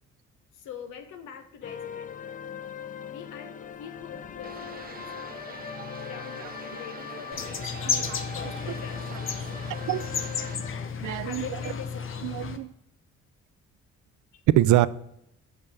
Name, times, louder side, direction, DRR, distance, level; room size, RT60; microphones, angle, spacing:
voice 1, 0.5-2.3 3.1-5.7 6.0-9.7 11.1-12.3 14.3-14.4, left 7 dB, 90° left, 9 dB, 1.0 m, -44 dB
sound 1, 1.6-10.9, left 8 dB, 30° left, 0.4 m, -41 dB
sound 2, 4.4-10.6, right 6 dB, 30° right, 0.6 m, -45 dB
sound 3, 7.3-12.6, left 6 dB, 45° left, 0.8 m, -33 dB
voice 2, 7.9-8.2 9.9-10.0 11.0-11.4 12.2-12.7 14.6-14.9, right 14 dB, 75° right, 16 dB, 0.5 m, -24 dB
5.9 x 5.4 x 6.6 m, 0.80 s
cardioid pair, 90°, 30 cm